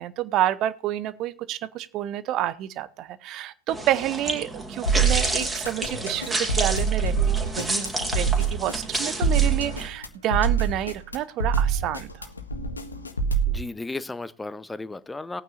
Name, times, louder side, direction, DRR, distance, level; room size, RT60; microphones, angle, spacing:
voice 1, 0.0-12.3, right 12 dB, 35° right, 16 dB, 0.9 m, -29 dB
sound 1, 3.7-9.9, right 2 dB, 10° right, 2.7 m, -30 dB
sound 2, 4.9-13.6, right 5 dB, 75° left, 1.4 m, -25 dB
voice 2, 13.5-15.4, left 2 dB, 10° left, 16 dB, 0.7 m, -34 dB
19.5 x 9.1 x 2.6 m, 0.35 s
figure-of-eight pair, 90°, 0 cm